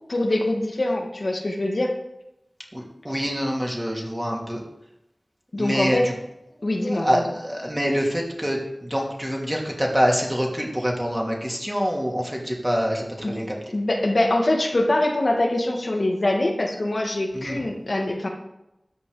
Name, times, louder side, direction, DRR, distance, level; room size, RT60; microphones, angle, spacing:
voice 1, 0.1-1.9 5.5-6.1 6.6-7.3 13.2-13.3 13.7-18.3, left 1 dB, 65° left, 0 dB, 2.1 m, -23 dB
voice 2, 2.7-4.6 5.6-6.0 6.8-13.6 17.3-17.6, equal, 15° right, -1 dB, 2.9 m, -25 dB
13.0 x 8.6 x 5.0 m, 0.88 s
wide cardioid pair, 60°, 0 cm